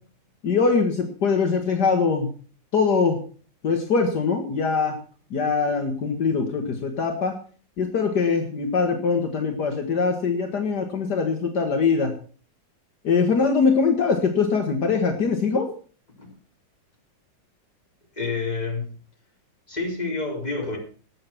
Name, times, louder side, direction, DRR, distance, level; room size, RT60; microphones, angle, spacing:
voice 1, 0.4-2.3 2.7-3.2 3.6-5.0 5.3-7.4 7.8-12.1 13.0-15.7, left 5 dB, 70° left, 4 dB, 2.2 m, -22 dB
voice 2, 18.2-19.0 19.7-20.8, left 3 dB, 20° left, 0 dB, 4.1 m, -28 dB
19.5 x 7.2 x 5.9 m, 0.40 s
omnidirectional pair, 1.9 m